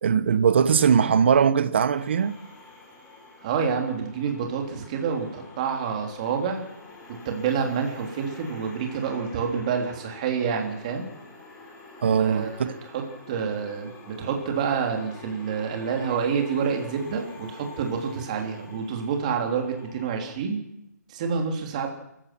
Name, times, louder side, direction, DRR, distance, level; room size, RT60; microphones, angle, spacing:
voice 1, 0.0-2.4 12.0-12.7, right 7 dB, 40° right, 1.2 m, -20 dB
Glassy Atmosphere, 1.9-20.3, left 2 dB, 15° left, 3.4 m, -46 dB
voice 2, 3.4-6.6 7.3-11.1 12.0-20.6 21.1-21.9, right 6 dB, 25° right, 3.5 m, -28 dB
28.0 x 15.5 x 6.2 m
hypercardioid pair, 170°, 10 cm